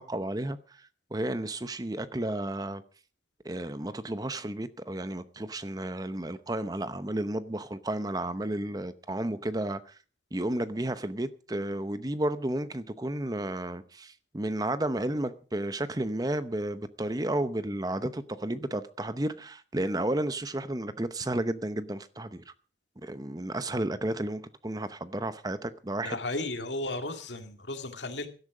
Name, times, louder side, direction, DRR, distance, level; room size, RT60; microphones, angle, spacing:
voice 1, 0.0-2.8 3.4-10.0 10.3-22.5 23.0-26.2, right 1 dB, 20° right, 0.8 m, -32 dB
voice 2, 26.0-28.3, left 2 dB, 80° left, 2.2 m, -34 dB
16.5 x 12.5 x 4.9 m
head